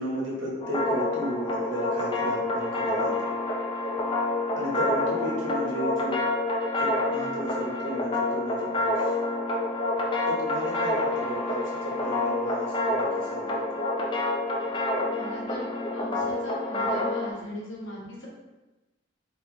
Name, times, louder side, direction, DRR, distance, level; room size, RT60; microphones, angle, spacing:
voice 1, 0.0-3.3 4.5-6.2 6.8-9.1 10.2-13.8, equal, 75° right, -4 dB, 1.2 m, -34 dB
sound 1, 0.6-17.3, left 2 dB, 25° left, 0.5 m, -28 dB
voice 2, 15.1-18.3, left 1 dB, 75° left, -4 dB, 1.3 m, -39 dB
3.3 x 2.8 x 3.9 m, 1.1 s
head